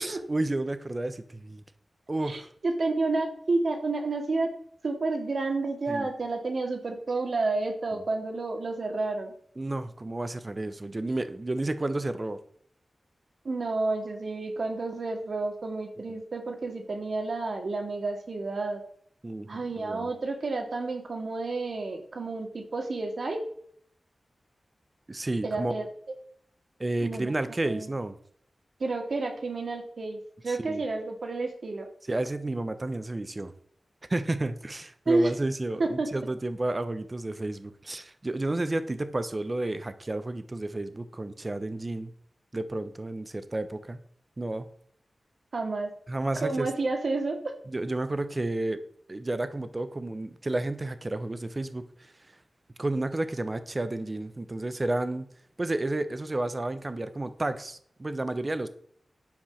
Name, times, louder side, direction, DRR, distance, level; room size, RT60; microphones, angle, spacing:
voice 1, 0.0-1.6 2.1-2.5 5.9-6.1 9.6-12.4 19.2-20.1 25.1-25.8 26.8-28.2 30.5-30.8 32.1-33.5 34.1-42.1 42.5-44.0 44.4-44.7 46.1-46.7 47.7-48.8 49.1-51.8 52.8-55.3 55.6-58.7, right 2 dB, 30° right, 11 dB, 1.0 m, -31 dB
voice 2, 2.3-4.5 4.8-9.3 13.4-18.8 19.5-23.4 25.4-25.9 27.0-27.3 27.7-27.9 28.8-31.9 35.1-35.3 35.8-36.1 45.5-45.9 46.4-47.5, right 3 dB, 70° right, 4 dB, 2.3 m, -30 dB
10.5 x 5.5 x 6.5 m, 0.62 s
wide cardioid pair, 90°, 0 cm